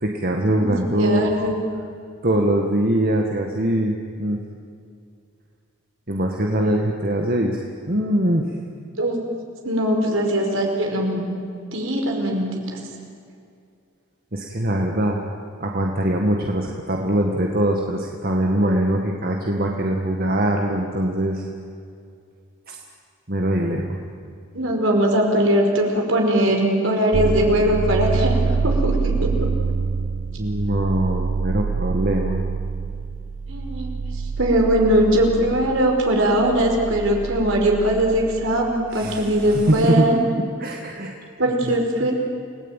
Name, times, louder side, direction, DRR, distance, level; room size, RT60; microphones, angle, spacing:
voice 1, 0.0-1.5 2.2-4.4 6.1-7.6 7.9-8.5 14.3-15.2 15.6-21.4 22.7-22.8 23.3-24.0 30.4-32.4 38.9-40.1 40.6-41.2 41.6-41.7 42.0-42.1, right 1 dB, 45° right, 1 dB, 1.9 m, -22 dB
voice 2, 1.0-1.6 9.0-9.2 9.6-11.3 11.7-12.8 24.5-29.5 33.5-33.9 34.4-40.2 41.4-42.1, right 1 dB, 65° right, 1 dB, 4.9 m, -20 dB
sound 1, 27.1-39.9, right 4 dB, 80° right, 0.8 m, -26 dB
29.0 x 18.5 x 9.2 m, 2.3 s
head